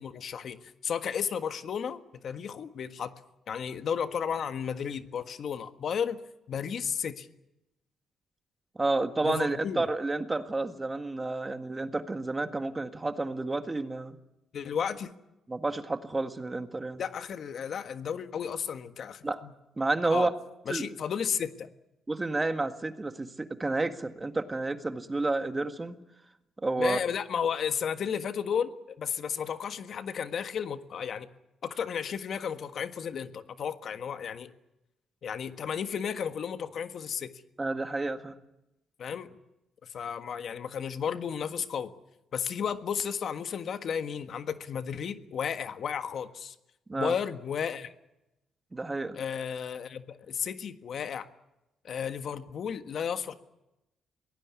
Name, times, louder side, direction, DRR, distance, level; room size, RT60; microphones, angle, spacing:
voice 1, 0.0-3.1 3.5-6.2 6.5-7.3 9.2-9.9 14.5-15.1 17.0-19.5 20.1-20.3 20.7-21.7 26.8-31.3 31.6-34.5 35.2-37.3 39.0-39.3 39.8-41.9 42.3-46.5 47.0-47.9 49.1-51.3 51.8-53.3, left 7 dB, 60° left, 9 dB, 1.5 m, -33 dB
voice 2, 8.8-14.2 15.5-17.0 19.2-19.4 19.8-20.3 20.7-20.9 22.1-26.0 26.6-27.0 37.6-38.4 46.9-47.1 48.7-49.2, right 2 dB, 20° right, 8 dB, 1.8 m, -30 dB
23.5 x 18.5 x 9.7 m, 0.92 s
cardioid pair, 90°, 0 cm